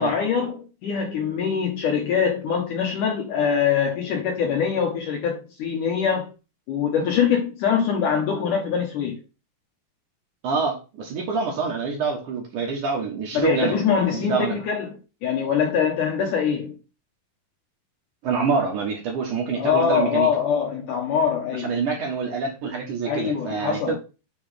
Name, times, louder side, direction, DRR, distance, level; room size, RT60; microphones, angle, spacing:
voice 1, 0.0-6.3 6.7-9.2 13.3-16.8 19.6-21.7 23.1-24.0, left 7 dB, 70° left, 2.1 m, -23 dB
voice 2, 10.4-13.8 14.1-14.6 18.2-20.3 21.5-24.0, right 5 dB, 60° right, 2.4 m, -26 dB
7.2 x 3.4 x 5.0 m
omnidirectional pair, 4.6 m